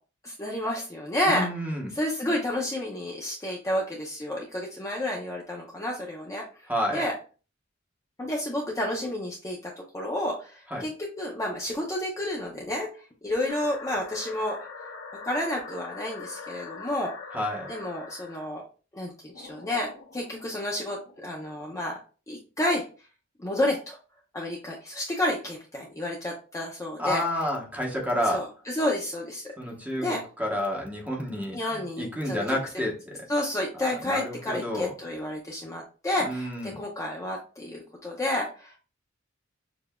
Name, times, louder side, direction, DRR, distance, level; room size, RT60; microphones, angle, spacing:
voice 1, 0.2-1.5 1.9-7.1 8.2-13.0 13.2-14.6 15.2-17.1 17.7-18.6 18.9-22.0 22.3-22.9 23.4-24.0 24.3-27.2 28.3-29.5 30.0-30.2 31.5-32.4 33.3-38.8, left 1 dB, 15° left, -2 dB, 0.6 m, -30 dB
voice 2, 1.3-1.9 6.7-7.0 10.7-10.9 17.3-17.7 27.0-28.5 29.6-33.2 33.8-34.9 36.2-36.8, equal, 10° right, 0 dB, 0.9 m, -30 dB
sound 1, 13.5-18.5 19.3-21.8, left 4 dB, 90° left, 0.8 m, -43 dB
6.7 x 2.4 x 2.2 m, 0.36 s
head